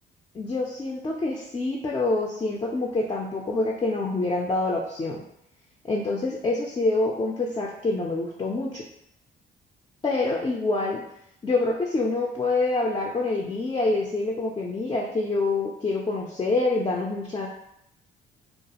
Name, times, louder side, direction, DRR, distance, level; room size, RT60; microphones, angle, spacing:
voice 1, 0.3-5.2 5.8-8.9 10.0-11.0 11.4-17.5, left 2 dB, 20° left, -1 dB, 0.3 m, -26 dB
2.3 x 2.3 x 2.8 m, 0.78 s
cardioid pair, 90°, 20 cm